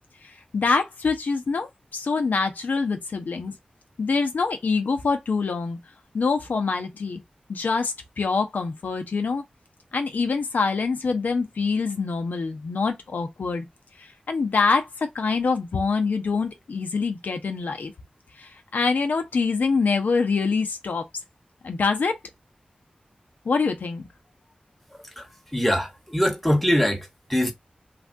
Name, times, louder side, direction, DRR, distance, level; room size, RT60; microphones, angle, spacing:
voice 1, 0.5-3.5 4.0-5.8 6.1-7.2 7.5-9.4 9.9-13.7 14.0-17.9 18.4-21.0 21.6-22.2 23.5-24.1, left 4 dB, 85° left, 0.6 m, -25 dB
voice 2, 25.5-27.5, equal, ahead, 1.0 m, -23 dB
3.3 x 2.3 x 2.5 m
wide cardioid pair, 60°, 3 cm